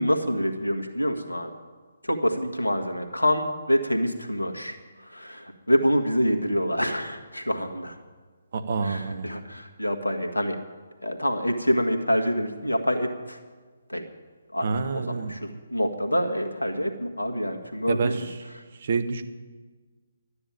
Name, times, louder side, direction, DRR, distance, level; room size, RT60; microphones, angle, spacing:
voice 1, 0.0-1.5 2.0-4.8 5.0-8.0 8.8-10.6 11.0-13.4 13.9-14.1 14.5-14.7 14.9-18.2, equal, 85° left, 5 dB, 1.7 m, -26 dB
voice 2, 8.5-9.3 14.6-15.3 17.9-18.3 18.8-19.2, right 4 dB, 45° right, 9 dB, 1.0 m, -27 dB
12.0 x 9.8 x 8.8 m, 1.4 s
figure-of-eight pair, 140°, 0 cm